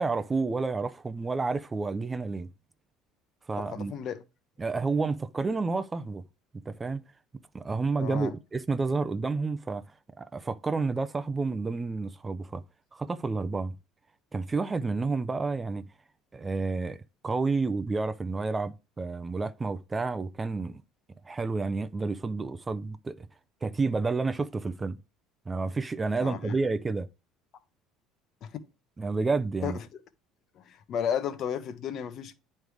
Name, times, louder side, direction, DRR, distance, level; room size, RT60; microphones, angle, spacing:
voice 1, 0.0-2.5 3.5-3.9 4.6-6.2 6.7-7.0 7.5-9.8 10.2-12.6 12.9-13.7 14.3-15.9 16.3-20.8 21.2-23.3 23.6-25.0 25.5-27.1 29.0-29.8, right 3 dB, 20° right, 0.5 m, -30 dB
voice 2, 3.6-4.2 8.0-8.3 26.2-26.6 28.4-28.6 29.6-29.9 30.5-32.3, left 8 dB, 55° left, 0.8 m, -33 dB
9.1 x 3.2 x 4.9 m
supercardioid pair, 90°, 0 cm